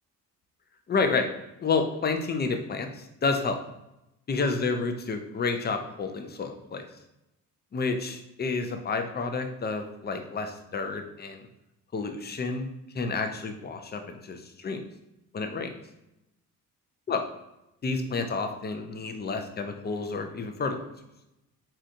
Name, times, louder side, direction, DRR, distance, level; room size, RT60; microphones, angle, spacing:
voice 1, 0.9-1.3 1.6-3.6 4.3-6.8 7.7-11.4 11.9-12.7 12.9-14.8 15.3-15.7 17.1-17.2 17.8-20.8, left 4 dB, 20° left, 5 dB, 0.5 m, -30 dB
4.1 x 2.4 x 2.6 m, 0.89 s
hypercardioid pair, 50°, 46 cm